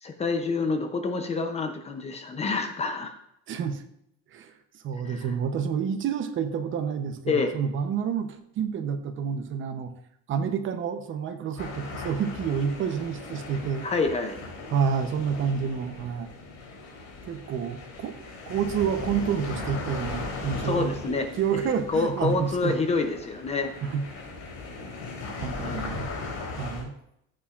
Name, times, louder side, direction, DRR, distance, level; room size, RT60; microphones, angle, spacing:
voice 1, 0.0-3.1 5.0-5.3 7.3-7.5 13.8-14.4 20.6-21.3 21.9-23.7 25.6-25.9, left 4 dB, 20° left, 6 dB, 0.6 m, -27 dB
voice 2, 3.5-3.8 4.3-9.9 10.3-13.9 14.7-16.3 17.2-18.2 18.5-22.7 23.8-24.0 25.4-26.1 26.6-26.9, right 7 dB, 40° right, 7 dB, 0.8 m, -29 dB
sound 1, 11.6-26.8, left 3 dB, 65° left, 3.5 m, -38 dB
14.0 x 8.6 x 2.5 m, 0.77 s
cardioid pair, 175°, 32 cm